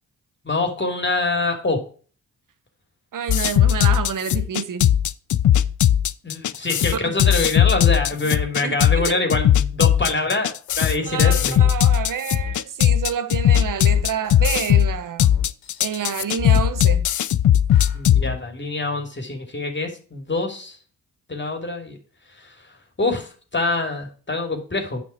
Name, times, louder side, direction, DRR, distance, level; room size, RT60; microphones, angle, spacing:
voice 1, 0.4-1.8 6.2-10.5 10.8-11.7 17.9-20.8 21.3-22.0 22.4-22.5 23.0-25.0, left 3 dB, 30° left, 2.9 m, -25 dB
voice 2, 3.1-4.9 8.6-9.1 11.1-15.3 15.8-17.1, right 8 dB, 65° right, 1.2 m, -28 dB
sound 1, 3.3-18.2, left 10 dB, 55° left, 0.6 m, -18 dB
sound 2, 10.7-10.8 11.0-11.6 12.4-12.6 13.6-14.8 15.3-15.8 16.4-17.2 17.7-18.4, left 8 dB, 85° left, 3.1 m, -32 dB
8.8 x 5.6 x 4.5 m
supercardioid pair, 50°, 35 cm